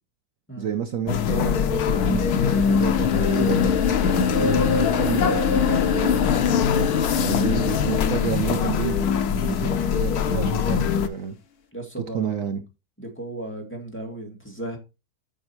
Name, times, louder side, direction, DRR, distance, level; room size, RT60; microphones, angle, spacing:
voice 1, 0.6-3.6 4.3-6.4 6.7-9.1 9.4-11.4 12.0-12.6, right 8 dB, 60° right, 1.1 m, -30 dB
sound 1, 1.1-11.1, left 6 dB, 75° left, 1.3 m, -23 dB
sound 2, 1.8-9.8, left 7 dB, 45° left, 1.0 m, -27 dB
voice 2, 11.7-12.4 13.0-14.8, right 1 dB, 5° left, 2.2 m, -35 dB
9.6 x 5.5 x 4.5 m
omnidirectional pair, 1.6 m